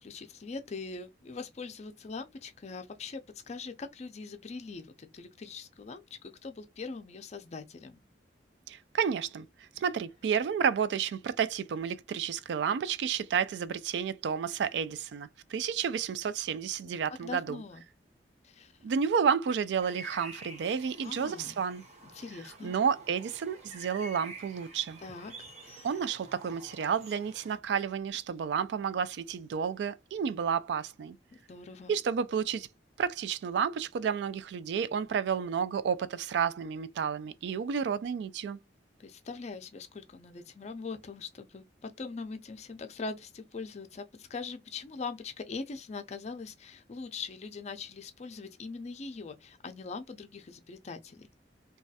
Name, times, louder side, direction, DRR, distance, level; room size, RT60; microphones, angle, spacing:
voice 1, 0.0-3.2 3.5-8.0 16.8-17.8 18.4-18.7 21.0-21.6 22.1-22.7 25.0-25.3 25.6-25.9 31.3-31.9 39.0-51.3, left 4 dB, 40° left, 0.4 m, -42 dB
voice 2, 8.7-17.6 18.8-21.8 22.6-25.0 25.8-31.2 31.9-32.7 33.0-38.6, right 7 dB, 70° right, 0.3 m, -31 dB
sound 1, 19.8-27.6, right 2 dB, 40° right, 0.8 m, -49 dB
3.1 x 2.3 x 2.7 m
head